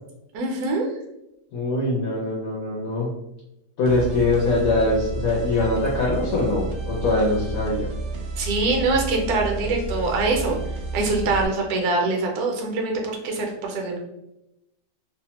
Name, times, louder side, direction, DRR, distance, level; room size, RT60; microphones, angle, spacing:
voice 1, 0.3-0.9 8.4-10.6 10.9-12.9 13.2-14.0, right 3 dB, 70° right, 1 dB, 1.1 m, -23 dB
voice 2, 1.5-3.1 3.8-7.9, left 2 dB, 65° left, -4 dB, 0.9 m, -23 dB
sound 1, 3.8-11.5, right 3 dB, 90° right, 0.6 m, -31 dB
2.8 x 2.1 x 2.8 m, 0.87 s
omnidirectional pair, 1.8 m